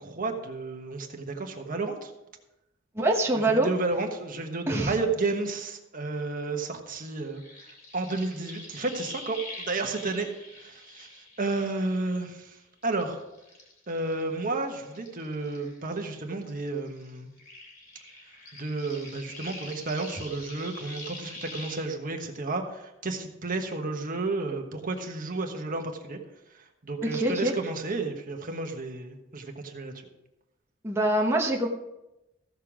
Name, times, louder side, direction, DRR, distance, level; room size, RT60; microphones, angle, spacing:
voice 1, 0.0-2.1 3.5-13.2 13.9-17.3 18.5-26.2 26.5-30.1, right 3 dB, 45° right, 4 dB, 1.3 m, -32 dB
voice 2, 2.9-3.7 4.7-5.0 27.0-27.5 30.8-31.7, right 1 dB, 15° right, -1 dB, 1.1 m, -24 dB
sound 1, 7.0-12.5 12.8-16.2 16.4-21.8, left 2 dB, 50° left, 3.1 m, -45 dB
15.0 x 6.7 x 5.0 m, 0.93 s
head